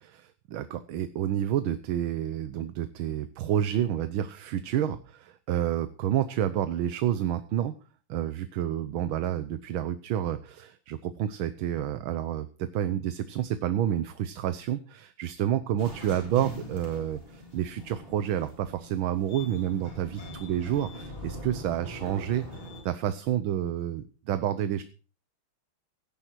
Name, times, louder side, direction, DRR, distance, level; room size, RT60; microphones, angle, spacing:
voice 1, 0.0-7.7 8.1-24.8, right 11 dB, 75° right, 11 dB, 1.7 m, -29 dB
sound 1, 15.8-22.8, equal, 25° left, 4.2 m, -42 dB
17.0 x 10.5 x 4.6 m, 0.37 s
omnidirectional pair, 2.3 m